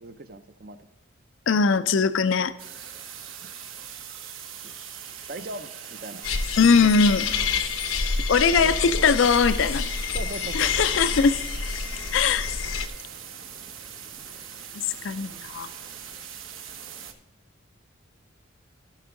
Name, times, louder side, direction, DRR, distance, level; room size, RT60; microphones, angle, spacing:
voice 1, 0.0-0.9 4.6-4.8 5.3-6.2 6.7-7.0 7.9-8.0 8.5-9.2 10.1-10.9, right 2 dB, 45° right, 10 dB, 0.6 m, -39 dB
voice 2, 1.5-2.5 6.6-7.2 8.3-9.9 10.5-11.4 12.1-12.5 14.7-15.7, left 5 dB, 70° left, 12 dB, 0.4 m, -21 dB
sound 1, 2.6-17.1, right 8 dB, 85° right, 1.2 m, -41 dB
sound 2, 6.2-12.9, left 5 dB, 85° left, 0.9 m, -28 dB
14.5 x 6.0 x 3.7 m, 1.0 s
head